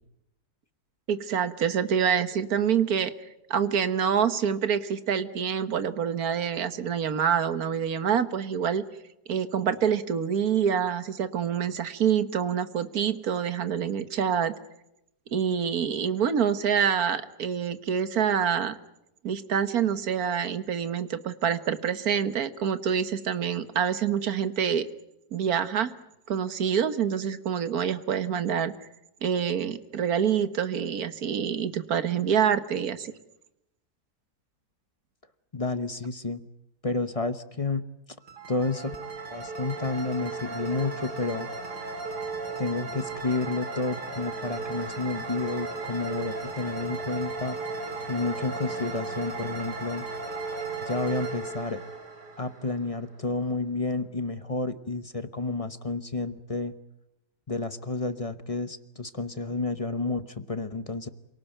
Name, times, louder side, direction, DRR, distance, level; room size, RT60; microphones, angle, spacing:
voice 1, 1.1-3.1 3.5-8.8 9.3-14.5 15.3-18.8 19.2-24.9 25.3-25.9 26.3-28.7 29.2-33.1, right 8 dB, 65° right, 12 dB, 1.7 m, -26 dB
voice 2, 35.5-36.4 36.8-37.8 38.5-39.0 39.3-41.5 42.6-47.6 48.1-50.1 50.8-51.8 52.4-56.7 57.5-61.1, left 3 dB, 30° left, 12 dB, 0.8 m, -30 dB
sound 1, 38.2-53.0, right 3 dB, 85° right, 4.4 m, -35 dB
27.5 x 18.5 x 9.1 m, 0.88 s
omnidirectional pair, 1.7 m